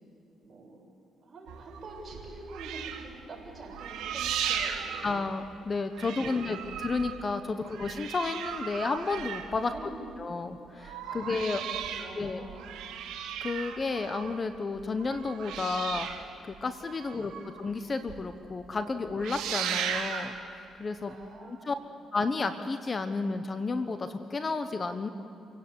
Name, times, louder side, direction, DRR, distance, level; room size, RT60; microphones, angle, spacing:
voice 1, 0.4-0.8 1.2-5.2 6.1-7.0 7.5-7.8 9.6-10.3 11.0-12.9 17.1-17.6 21.0-21.8, right 2 dB, 35° right, -1 dB, 6.9 m, -47 dB
sound 1, 1.5-5.7 5.9-10.2 10.6-17.7 18.1-18.2 18.5-18.8 19.1-20.4 21.2-21.3, right 8 dB, 90° right, 2.1 m, -37 dB
voice 2, 5.0-9.7 10.2-11.6 12.1-12.4 13.4-16.1 16.5-17.3 17.6-20.4 20.8-21.2 21.5-21.7 22.1-25.1, left 4 dB, 35° left, 9 dB, 1.2 m, -32 dB
27.5 x 17.0 x 8.2 m, 2.7 s
cardioid pair, 90°, 0 cm